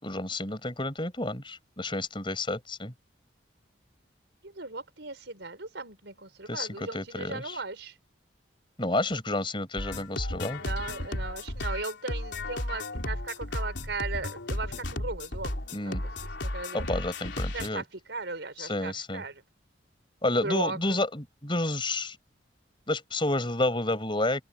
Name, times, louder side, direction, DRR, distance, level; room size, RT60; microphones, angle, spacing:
voice 1, 0.0-2.9 6.5-7.6 8.8-10.6 15.7-16.0 16.7-17.8 18.6-19.2 20.2-22.2 22.9-24.4, left 2 dB, 25° left, 6.3 m, -30 dB
voice 2, 4.6-7.9 10.6-15.9 16.4-16.8 17.5-17.8 18.1-19.4 20.3-21.0, right 3 dB, 70° right, 5.0 m, -37 dB
sound 1, 9.8-17.7, left 1 dB, 70° left, 3.7 m, -34 dB
open air
head